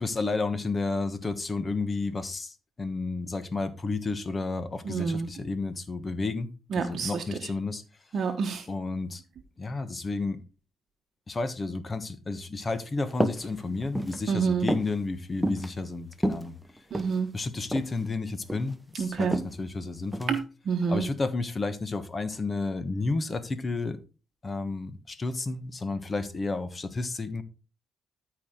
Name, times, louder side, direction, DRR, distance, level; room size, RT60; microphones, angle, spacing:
voice 1, 0.0-7.8 8.7-9.2 9.6-10.4 11.3-16.5 17.3-20.4 20.9-24.0 24.4-27.4, left 3 dB, 30° left, 1.2 m, -31 dB
voice 2, 4.8-5.3 6.7-7.5 8.1-8.6 14.3-14.7 16.9-17.3 18.9-19.4 20.3-21.1, right 5 dB, 60° right, 1.0 m, -28 dB
sound 1, 13.1-13.5 13.8-14.2 14.7-14.9 15.4-15.7 16.1-17.2 17.7-17.9 18.3-18.8 19.3-19.5 20.1-20.4, equal, ahead, 1.0 m, -29 dB
13.0 x 4.9 x 3.7 m
cardioid pair, 90°, 0 cm